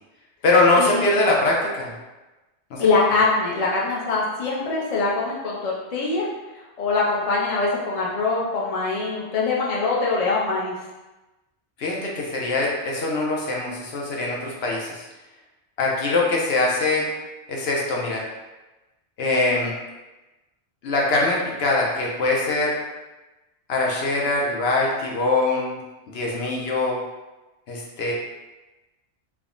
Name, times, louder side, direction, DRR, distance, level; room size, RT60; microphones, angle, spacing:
voice 1, 0.4-1.9 2.7-2.9 11.8-15.0 15.8-17.1 17.5-18.2 19.2-19.7 20.8-22.8 23.7-25.8 26.1-27.0 27.7-28.1, left 2 dB, 70° left, -2 dB, 0.8 m, -22 dB
voice 2, 2.8-6.3 6.8-10.7, left 3 dB, 45° left, -4 dB, 0.5 m, -23 dB
3.4 x 2.1 x 2.4 m, 1.1 s
omnidirectional pair, 1.2 m